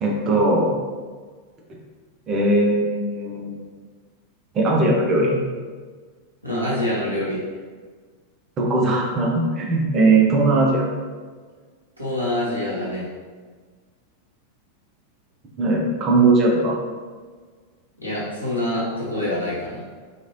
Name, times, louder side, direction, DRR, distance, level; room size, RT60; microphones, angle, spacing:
voice 1, 0.0-0.8 2.3-3.7 4.5-5.4 8.6-10.9 15.6-16.8, right 2 dB, 30° right, -2 dB, 0.7 m, -19 dB
voice 2, 6.4-7.4 12.0-13.1 18.0-19.8, left 1 dB, 90° left, -8 dB, 0.9 m, -25 dB
3.1 x 2.5 x 2.9 m, 1.5 s
figure-of-eight pair, 90°, 0 cm